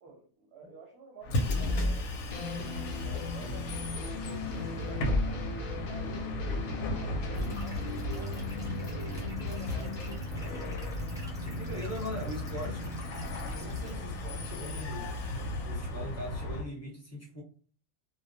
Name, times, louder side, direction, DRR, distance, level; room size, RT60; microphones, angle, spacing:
voice 1, 0.0-5.5 5.8-11.0, right 4 dB, 65° right, 0 dB, 0.7 m, -52 dB
Bus, 1.2-16.6, left 1 dB, 90° left, 1.0 m, -35 dB
sound 1, 1.4-10.2, left 3 dB, 70° left, 0.4 m, -37 dB
sound 2, 7.3-13.9, right 1 dB, 5° right, 0.3 m, -48 dB
voice 2, 11.4-12.9 13.5-17.4, equal, 15° left, -5 dB, 0.7 m, -41 dB
2.2 x 2.1 x 2.6 m, 0.42 s
omnidirectional pair, 1.4 m